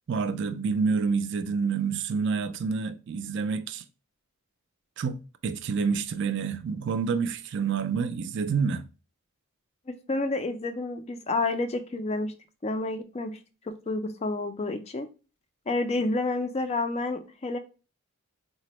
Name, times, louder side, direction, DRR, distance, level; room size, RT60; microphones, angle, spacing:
voice 1, 0.1-3.8 5.0-8.8, right 5 dB, 55° right, 0.3 m, -28 dB
voice 2, 9.9-12.3 12.6-13.4 13.7-15.1 15.7-17.6, left 2 dB, 30° left, 0.3 m, -29 dB
4.1 x 2.0 x 2.9 m
head